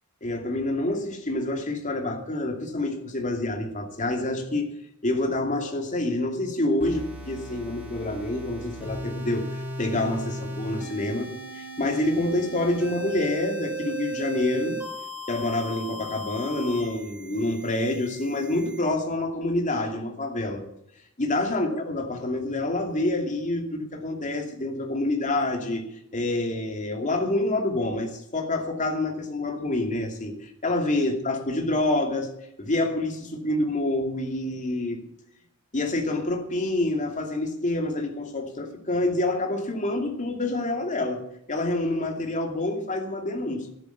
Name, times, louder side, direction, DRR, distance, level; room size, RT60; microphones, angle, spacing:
voice 1, 0.2-4.8 5.0-14.8 15.3-20.6 21.2-25.8 26.1-32.3 32.6-35.0 35.7-41.2 41.5-43.7, left 2 dB, 35° left, 3 dB, 2.7 m, -27 dB
sound 1, 6.8-18.8, right 1 dB, 5° right, 5.3 m, -37 dB
13.0 x 12.0 x 5.8 m, 0.76 s
head